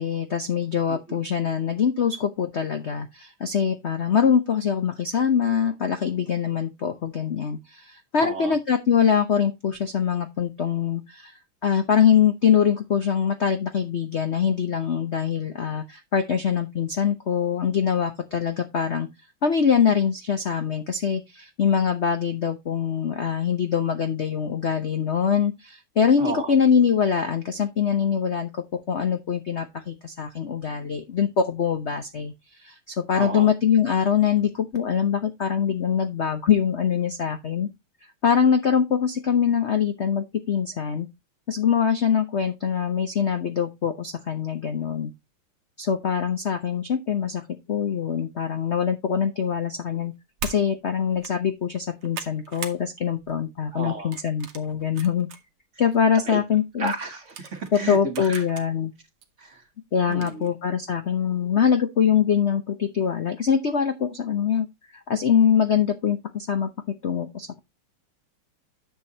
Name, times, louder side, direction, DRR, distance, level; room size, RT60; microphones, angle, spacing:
voice 1, 0.0-11.3 11.6-19.1 19.4-32.3 32.6-37.7 38.2-41.1 41.5-45.1 45.8-47.4 47.7-50.1 50.4-55.3 55.8-56.9 57.7-58.9 59.9-64.7 64.9-66.7 67.0-67.6, left 7 dB, 60° left, 0.7 m, -23 dB
voice 2, 8.2-8.6 26.2-26.5 33.2-33.5 53.7-54.2 56.3-56.4 56.8-58.4 59.4-59.6 60.1-60.5, right 3 dB, 40° right, 1.2 m, -32 dB
sound 1, 50.4-50.6 51.1-51.3 51.7-52.8 53.2-53.5 54.1-55.4 55.9-56.0 56.9-58.7 59.2-59.3 60.1-60.5, right 7 dB, 75° right, 1.9 m, -39 dB
10.0 x 6.9 x 2.8 m
omnidirectional pair, 2.4 m